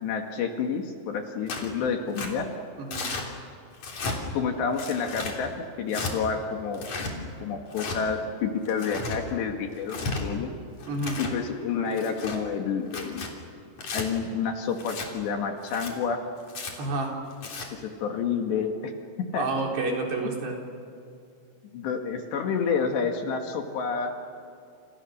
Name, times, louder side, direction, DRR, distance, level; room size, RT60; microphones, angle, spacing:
voice 1, 0.0-2.5 4.3-6.9 7.4-10.5 11.2-13.3 13.9-16.2 17.7-18.9 19.3-19.5 21.7-24.1, left 6 dB, 65° left, 3 dB, 3.7 m, -29 dB
Tearing, 1.5-1.7 2.1-2.3 2.9-3.2 3.8-4.2 4.8-5.3 5.9-6.1 6.7-7.1 7.7-8.0 8.6-9.2 9.8-10.2 10.8-11.3 11.9-12.4 12.9-13.3 13.8-14.0 14.8-15.1 15.6-15.9 16.5-16.7 17.3-17.7, left 3 dB, 40° left, 4.3 m, -34 dB
voice 2, 2.8-3.1 10.9-11.2 16.8-17.2 19.3-20.6, right 2 dB, 55° right, 0 dB, 5.8 m, -29 dB
29.5 x 29.5 x 6.6 m, 2.5 s
omnidirectional pair, 5.9 m